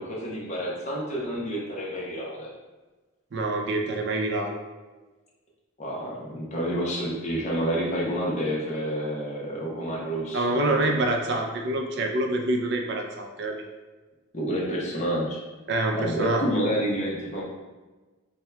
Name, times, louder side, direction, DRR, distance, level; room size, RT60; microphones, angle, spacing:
voice 1, 0.0-2.5 5.8-10.9 14.3-15.4 16.0-17.4, equal, 30° left, -4 dB, 0.8 m, -29 dB
voice 2, 3.3-4.6 10.3-13.5 15.7-16.7, right 2 dB, 50° right, 2 dB, 0.4 m, -26 dB
4.5 x 2.2 x 3.3 m, 1.2 s
head